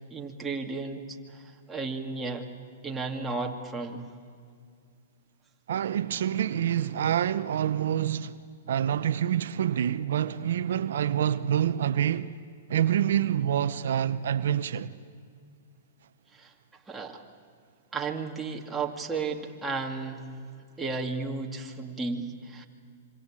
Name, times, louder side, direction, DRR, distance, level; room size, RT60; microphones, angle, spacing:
voice 1, 0.1-2.5 2.8-4.1 16.3-16.5 16.9-17.2 17.9-20.3 20.8-22.7, right 4 dB, 10° right, 2.5 m, -34 dB
voice 2, 5.7-8.3 8.7-12.3 12.7-14.9, right 10 dB, 70° right, 0.8 m, -27 dB
26.5 x 25.5 x 8.9 m
hypercardioid pair, 130°, 0 cm